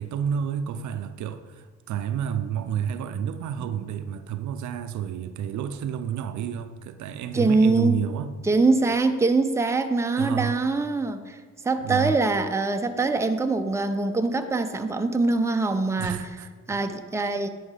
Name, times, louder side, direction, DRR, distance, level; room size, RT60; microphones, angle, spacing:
voice 1, 0.0-8.3 10.2-10.6 11.8-12.2 16.0-16.8, right 9 dB, 70° right, 0.6 m, -30 dB
voice 2, 7.3-8.0 8.4-11.4 11.6-16.2 16.7-17.5, right 3 dB, 10° right, 0.6 m, -23 dB
10.0 x 4.8 x 5.0 m
cardioid pair, 90°, 30 cm